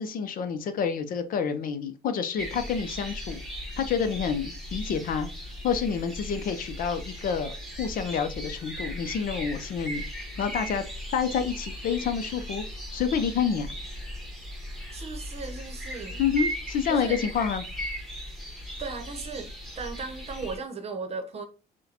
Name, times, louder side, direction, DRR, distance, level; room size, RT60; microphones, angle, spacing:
voice 1, 0.0-3.4 3.8-5.3 5.6-10.1 10.4-10.9 11.1-12.6 12.9-13.7 16.2-17.6, left 7 dB, 55° left, 0.6 m, -28 dB
sound 1, 2.4-20.6, equal, ahead, 1.1 m, -37 dB
voice 2, 14.9-16.2 16.9-17.2 18.8-19.5 19.8-21.4, right 4 dB, 40° right, 0.8 m, -36 dB
6.0 x 2.2 x 2.9 m
cardioid pair, 110°, 17 cm